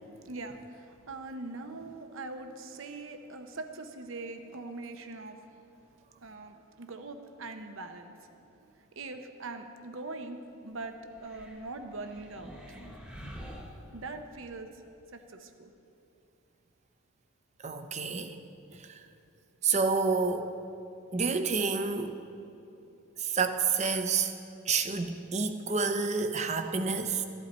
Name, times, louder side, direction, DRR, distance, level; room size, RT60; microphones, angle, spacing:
voice 1, 0.2-5.4 6.2-8.3 8.7-12.8 13.9-14.7 15.1-15.7, right 2 dB, 65° right, 7 dB, 0.8 m, -42 dB
sound 1, 11.1-14.5, equal, 5° right, 1.2 m, -47 dB
voice 2, 17.6-18.4 18.8-19.0 19.6-20.5 21.1-22.2 23.2-24.3 24.7-27.3, right 4 dB, 30° right, 7 dB, 0.6 m, -29 dB
14.5 x 11.5 x 4.2 m, 2.8 s
head